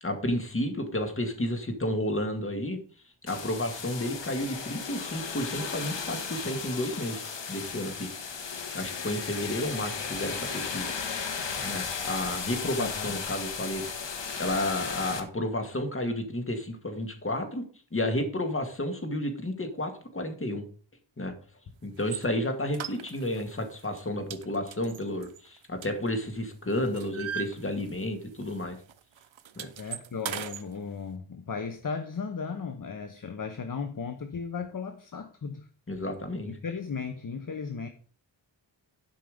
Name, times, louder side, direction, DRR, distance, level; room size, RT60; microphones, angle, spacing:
voice 1, 0.0-2.8 3.2-10.9 11.6-17.7 17.9-20.7 21.2-21.3 21.8-28.8 29.6-29.7 35.9-36.5, left 1 dB, 25° left, 6 dB, 2.0 m, -32 dB
sound 1, 3.3-15.2, left 5 dB, 65° left, 1.6 m, -35 dB
voice 2, 12.8-13.1 29.8-35.7 36.4-37.9, left 5 dB, 45° left, 8 dB, 1.0 m, -36 dB
sound 2, 22.0-22.3 22.7-23.5 23.8-24.0 24.3-26.4 26.7-28.2 28.4-28.6 28.9-30.6, right 9 dB, 80° right, 0.9 m, -39 dB
11.5 x 5.6 x 5.1 m, 0.43 s
wide cardioid pair, 95°, 46 cm